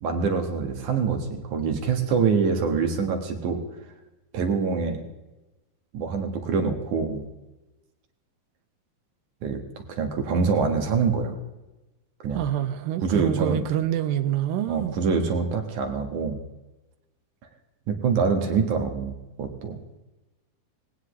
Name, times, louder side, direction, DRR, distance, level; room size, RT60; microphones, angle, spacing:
voice 1, 0.0-3.6 4.3-5.0 5.9-7.2 9.4-9.6 9.9-11.4 12.2-12.4 13.0-13.6 14.7-16.4 17.9-19.8, right 5 dB, 60° right, 2.7 m, -25 dB
voice 2, 12.3-15.0, right 11 dB, 80° right, 2.2 m, -26 dB
19.0 x 18.0 x 3.2 m
omnidirectional pair, 4.4 m